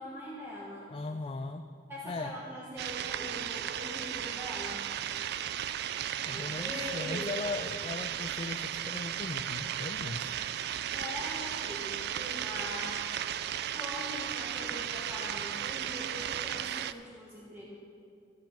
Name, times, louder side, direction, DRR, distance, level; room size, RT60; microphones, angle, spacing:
voice 1, 0.0-0.9 1.9-4.9 6.2-7.4 10.9-13.4 13.7-17.7, equal, 15° right, -5 dB, 1.2 m, -42 dB
voice 2, 0.9-1.6 2.0-2.3 6.3-10.3, left 3 dB, 30° left, 6 dB, 0.4 m, -38 dB
sound 1, 2.8-16.9, right 10 dB, 60° right, 0.3 m, -35 dB
15.0 x 8.2 x 4.3 m, 2.3 s
head